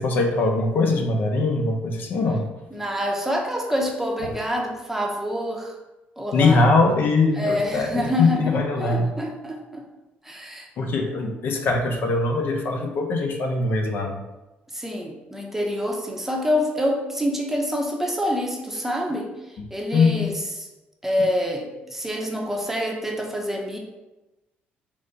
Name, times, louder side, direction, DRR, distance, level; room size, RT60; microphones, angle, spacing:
voice 1, 0.0-2.5 4.2-4.3 6.3-9.1 10.8-14.2 19.9-20.3, left 3 dB, 60° left, 3 dB, 0.6 m, -22 dB
voice 2, 2.7-5.7 6.2-6.7 7.4-9.9 10.2-10.7 14.7-19.3 19.7-20.6 21.0-23.8, left 1 dB, 10° right, 0 dB, 0.7 m, -26 dB
5.0 x 2.2 x 3.8 m, 1.0 s
cardioid pair, 95°, 4 cm